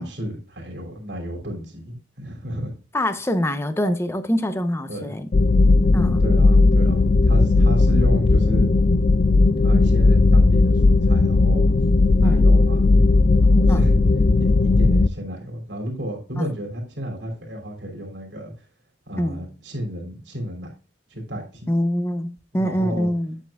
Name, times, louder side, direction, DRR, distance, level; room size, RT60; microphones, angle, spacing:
voice 1, 0.0-2.7 4.9-5.1 5.7-5.8 6.2-8.7 9.6-11.6 12.2-12.8 13.4-14.0 14.4-18.5 19.1-20.7 21.1-21.7 22.5-23.1, equal, 70° right, 3.0 m, -32 dB
voice 2, 2.9-5.3 5.9-6.2 12.2-12.5 13.7-13.9 16.4-16.5 19.2-19.5 21.7-23.4, equal, 15° left, 0.7 m, -24 dB
sound 1, 5.3-15.1, left 3 dB, 45° left, 0.4 m, -16 dB
8.7 x 7.9 x 2.3 m
head